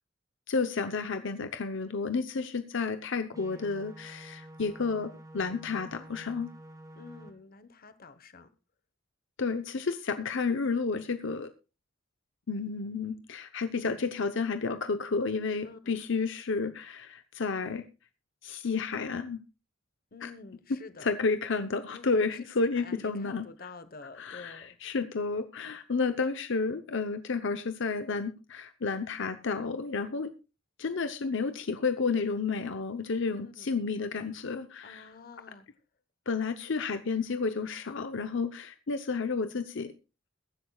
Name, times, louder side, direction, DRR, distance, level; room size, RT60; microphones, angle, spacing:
voice 1, 0.5-6.5 9.4-11.5 12.5-17.8 18.4-19.4 20.2-20.3 21.0-23.7 24.2-30.3 30.8-35.1 36.3-39.9, left 4 dB, 65° left, 0.8 m, -31 dB
sound 1, 3.3-7.3, right 1 dB, 15° right, 1.7 m, -49 dB
voice 2, 7.0-8.5 15.6-15.9 20.1-21.1 21.9-24.8 33.3-33.7 34.8-35.7, left 4 dB, 50° left, 1.1 m, -48 dB
22.0 x 10.5 x 2.3 m
head